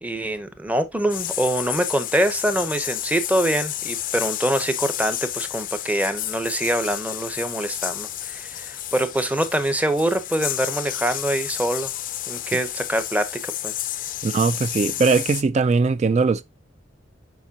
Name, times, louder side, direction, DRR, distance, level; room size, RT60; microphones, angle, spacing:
voice 1, 0.0-11.9 12.3-13.7, right 1 dB, 10° right, 0.8 m, -24 dB
sound 1, 1.1-15.4, left 13 dB, 45° left, 0.4 m, -31 dB
voice 2, 14.2-16.4, right 4 dB, 35° right, 0.3 m, -20 dB
7.1 x 5.1 x 2.7 m
head